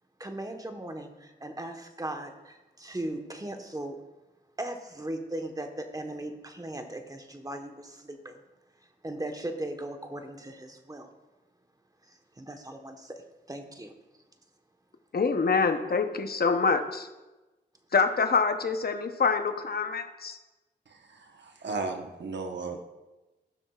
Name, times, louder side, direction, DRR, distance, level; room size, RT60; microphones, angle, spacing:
voice 1, 0.2-4.0 4.6-8.4 9.0-11.1 12.0-13.9, right 1 dB, 20° right, 5 dB, 1.1 m, -38 dB
voice 2, 15.1-17.1 17.9-20.4, left 4 dB, 55° left, 8 dB, 0.8 m, -26 dB
voice 3, 20.9-22.9, right 3 dB, 70° right, 4 dB, 1.0 m, -36 dB
15.0 x 6.1 x 2.4 m, 1.1 s
cardioid pair, 45°, 19 cm